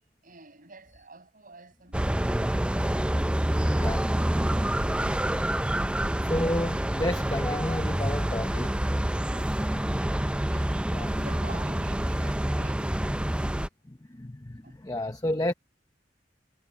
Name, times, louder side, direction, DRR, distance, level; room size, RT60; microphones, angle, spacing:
voice 1, 0.0-2.0 9.3-13.1 14.6-14.8, right 3 dB, 50° right, 7.8 m, -49 dB
sound 1, 1.9-13.7, right 1 dB, 5° right, 0.5 m, -27 dB
voice 2, 3.7-4.1 6.2-8.8 10.9-11.1 13.9-15.5, left 1 dB, 20° left, 0.9 m, -31 dB
head